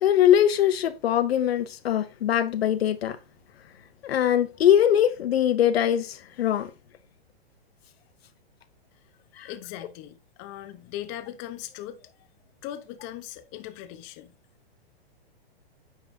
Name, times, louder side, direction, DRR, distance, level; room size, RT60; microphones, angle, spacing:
voice 1, 0.0-3.2 4.0-6.7 9.4-9.5, left 10 dB, 75° left, 0.8 m, -22 dB
voice 2, 9.4-12.0 12.6-14.3, left 12 dB, 35° left, 0.9 m, -39 dB
9.3 x 5.4 x 2.7 m
hypercardioid pair, 140°, 31 cm